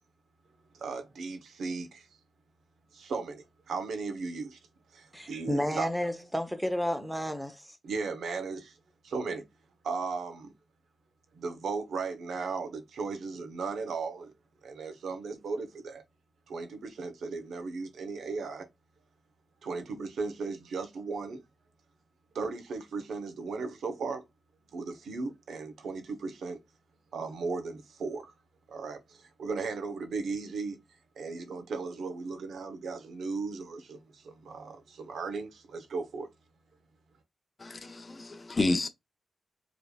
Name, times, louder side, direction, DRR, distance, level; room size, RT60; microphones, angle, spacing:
voice 1, 0.7-2.1 2.9-4.6 4.9-5.9 7.8-8.8 9.0-9.4 9.8-10.5 11.3-14.3 14.6-16.0 16.5-18.7 19.6-21.4 22.3-24.2 24.7-26.6 27.1-28.3 28.7-30.8 31.2-36.3, right 4 dB, 85° right, 1.1 m, -36 dB
voice 2, 5.1-7.8, equal, 5° right, 1.0 m, -32 dB
voice 3, 37.6-38.9, left 2 dB, 35° left, 0.6 m, -30 dB
5.1 x 3.3 x 2.4 m
wide cardioid pair, 105°, 0 cm